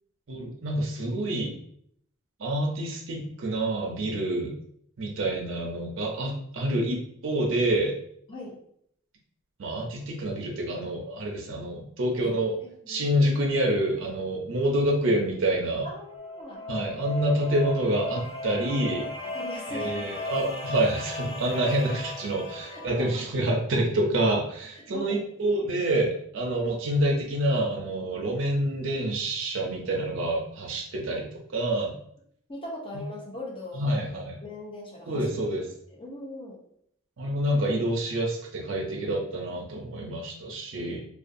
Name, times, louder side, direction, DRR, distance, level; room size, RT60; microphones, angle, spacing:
voice 1, 0.3-1.6 2.4-4.6 5.0-7.9 9.6-12.5 12.9-15.9 16.7-19.1 19.7-32.0 32.9-33.0 33.7-34.4 35.1-35.7 37.2-41.0, right 1 dB, 65° right, -1 dB, 0.5 m, -27 dB
voice 2, 12.6-13.1 15.8-16.7 18.6-18.8 19.3-20.0 22.7-23.2 24.8-25.2 32.5-34.1 34.4-35.2 35.9-36.6, left 1 dB, 25° left, -2 dB, 0.6 m, -40 dB
sound 1, 15.7-23.4, left 2 dB, 65° left, 0.7 m, -37 dB
2.5 x 2.3 x 2.5 m, 0.68 s
head